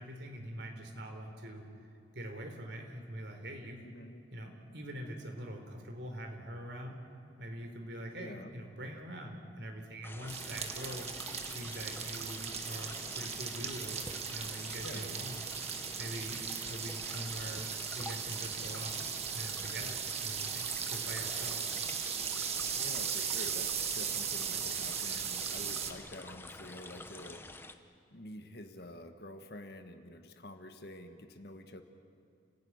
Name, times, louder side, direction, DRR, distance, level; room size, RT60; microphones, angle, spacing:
voice 1, 0.0-1.9 2.1-3.8 4.3-7.0 7.4-11.1 11.5-15.4 16.0-17.7 18.0-21.7, right 1 dB, 65° right, 3 dB, 3.7 m, -44 dB
voice 2, 3.8-4.2 8.2-8.5 14.8-15.2 22.7-27.8 28.1-31.8, left 1 dB, 55° left, 7 dB, 1.6 m, -48 dB
sound 1, 10.0-27.7, left 2 dB, 10° left, 0.8 m, -48 dB
sound 2, 10.3-25.9, right 7 dB, 35° right, 1.4 m, -37 dB
29.5 x 15.5 x 9.7 m, 2.4 s
head